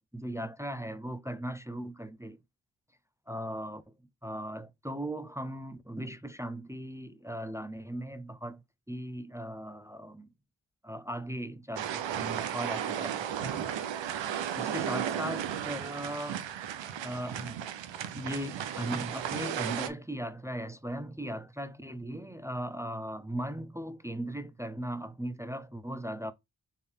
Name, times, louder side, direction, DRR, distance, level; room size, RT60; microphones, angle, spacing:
voice 1, 0.1-2.4 3.3-3.8 4.2-10.3 10.8-13.6 14.3-16.4 17.0-17.7 18.1-26.3, right 1 dB, 5° right, 0.7 m, -38 dB
sound 1, 11.8-19.9, right 9 dB, 80° right, 0.7 m, -34 dB
4.6 x 3.2 x 3.6 m
cardioid pair, 45°, 44 cm